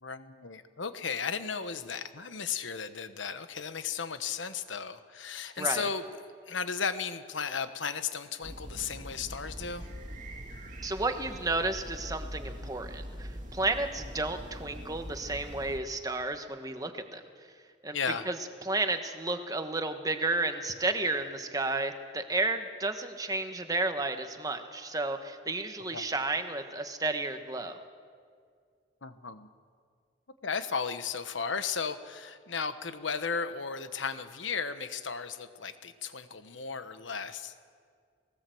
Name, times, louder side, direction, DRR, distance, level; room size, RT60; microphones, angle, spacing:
voice 1, 0.0-6.0 6.5-9.9 17.9-18.2 25.9-26.0 29.0-29.5 30.4-37.5, left 6 dB, 85° left, 10 dB, 1.2 m, -35 dB
voice 2, 5.6-5.9 10.8-17.2 17.8-18.0 18.2-18.4 18.6-27.8, right 2 dB, 20° right, 7 dB, 1.2 m, -32 dB
sound 1, 8.4-15.8, equal, 40° right, 2.1 m, -43 dB
20.0 x 18.5 x 7.8 m, 2.1 s
head